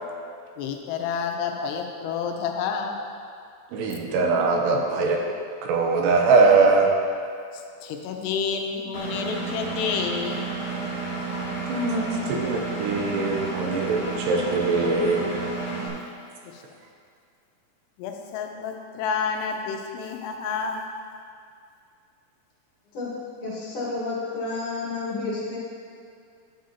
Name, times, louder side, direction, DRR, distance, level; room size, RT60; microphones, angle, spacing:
voice 1, 0.6-3.0 7.5-10.4 16.4-16.6 18.0-20.8, left 6 dB, 85° left, 3 dB, 2.7 m, -29 dB
voice 2, 3.7-5.2 5.6-6.9 11.7-15.3, right 3 dB, 80° right, 1 dB, 2.9 m, -22 dB
Engine, 8.9-15.9, right 3 dB, 50° right, 2.0 m, -31 dB
voice 3, 22.9-25.6, left 3 dB, 60° left, -7 dB, 2.6 m, -31 dB
11.5 x 7.8 x 2.8 m, 2.3 s
omnidirectional pair, 4.8 m